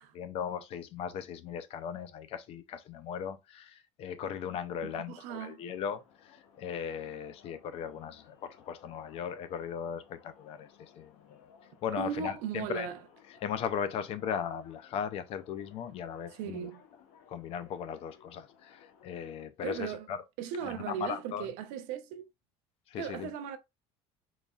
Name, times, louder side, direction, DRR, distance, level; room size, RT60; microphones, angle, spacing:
voice 1, 0.1-6.3 6.6-11.5 11.8-12.9 13.4-16.7 17.3-20.2 20.6-21.5 22.9-23.3, left 8 dB, 50° left, 0.5 m, -38 dB
voice 2, 4.8-5.6 12.0-13.0 16.3-16.9 19.6-20.1 20.4-22.3 23.0-23.6, right 8 dB, 80° right, 0.6 m, -37 dB
sound 1, 5.7-19.5, left 7 dB, 80° left, 1.0 m, -60 dB
3.9 x 3.1 x 2.3 m
cardioid pair, 140°, 13 cm